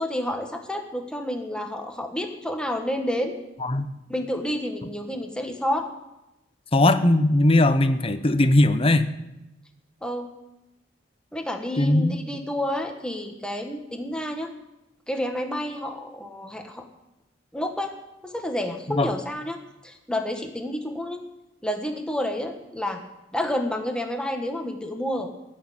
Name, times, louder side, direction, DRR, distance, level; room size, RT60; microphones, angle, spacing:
voice 1, 0.0-3.4 4.1-5.9 10.0-10.3 11.3-14.5 15.1-16.8 17.5-17.9 18.2-21.2 21.6-23.0 23.3-25.3, left 1 dB, 5° left, 4 dB, 1.5 m, -29 dB
voice 2, 6.7-9.1 11.8-12.2 18.9-19.1, left 1 dB, 30° left, 10 dB, 0.9 m, -19 dB
15.5 x 6.5 x 10.0 m, 0.93 s
head